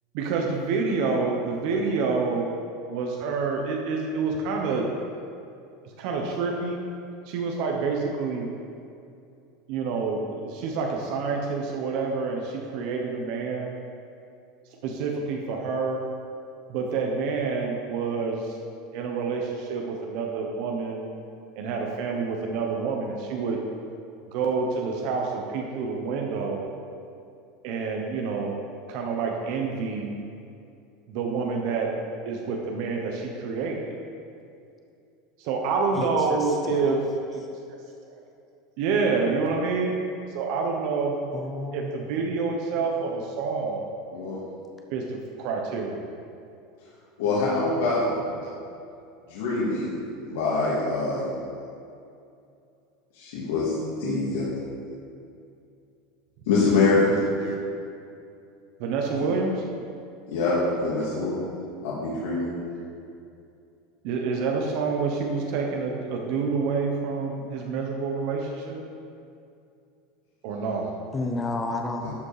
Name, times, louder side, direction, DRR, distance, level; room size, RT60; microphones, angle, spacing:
voice 1, 0.1-2.5 2.9-4.8 6.0-6.8 7.3-8.5 9.7-13.7 14.8-16.0 16.7-18.5 18.9-21.0 21.6-23.6 24.3-26.6 27.6-28.6 28.9-30.1 31.1-31.9 32.3-33.8 35.4-37.4 37.7-37.8 38.8-40.0 40.3-41.2 41.7-43.9 44.9-45.0 45.4-46.0 47.8-48.7 49.9-50.3 50.9-51.7 54.0-54.2 57.1-57.6 58.8-59.9 60.9-61.1 61.4-61.8 62.6-62.9 64.0-68.8 70.4-70.9, right 4 dB, 55° right, 1 dB, 1.0 m, -28 dB
voice 2, 35.9-37.0 41.3-41.9 71.1-72.1, left 2 dB, 15° left, 3 dB, 0.6 m, -31 dB
voice 3, 47.2-48.1 49.3-49.9 50.3-51.3 53.2-54.4 56.5-57.1 59.2-59.3 60.3-61.3 61.8-62.4 72.0-72.1, left 3 dB, 80° left, -7 dB, 2.0 m, -24 dB
12.5 x 5.2 x 5.0 m, 2.5 s
supercardioid pair, 155°, 0 cm